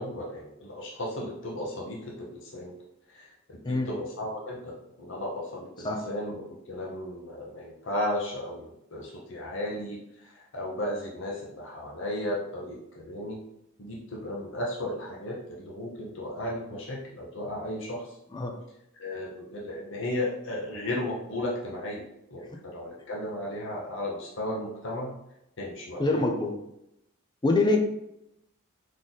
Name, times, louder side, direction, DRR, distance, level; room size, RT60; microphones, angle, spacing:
voice 1, 0.0-2.7 3.1-13.4 13.8-18.2 19.0-22.0 22.3-25.1 25.6-26.2, left 1 dB, 60° left, -3 dB, 0.9 m, -35 dB
voice 2, 26.0-26.6 27.4-27.8, left 2 dB, 20° left, 3 dB, 0.5 m, -24 dB
3.8 x 3.2 x 4.1 m, 0.81 s
head